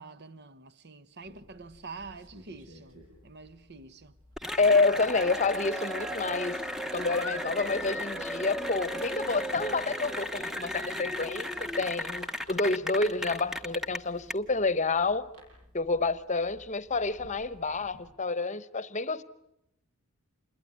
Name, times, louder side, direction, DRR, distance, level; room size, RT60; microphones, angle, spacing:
voice 1, 0.0-3.0 3.2-4.1 7.1-7.4, right 4 dB, 50° right, 1.1 m, -46 dB
sound 1, 1.2-18.1, equal, 70° right, 7.7 m, -55 dB
Cheering / Applause, 4.4-14.3, equal, ahead, 1.0 m, -35 dB
voice 2, 4.6-6.6 6.9-15.3 15.7-19.2, left 3 dB, 35° left, 1.0 m, -28 dB
28.0 x 21.5 x 9.9 m
head